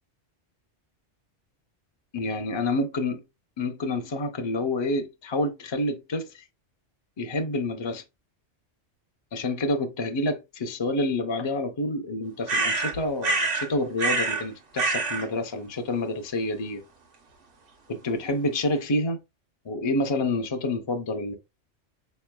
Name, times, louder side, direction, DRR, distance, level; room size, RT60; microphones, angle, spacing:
voice 1, 2.1-3.2 3.6-6.5 7.2-8.0 9.3-16.8 17.9-19.2 19.6-21.4, left 2 dB, 40° left, 0.4 m, -28 dB
sound 1, 12.5-13.7 14.0-14.5 14.8-15.3, right 3 dB, 85° right, 1.3 m, -26 dB
4.3 x 3.1 x 2.2 m
omnidirectional pair, 1.2 m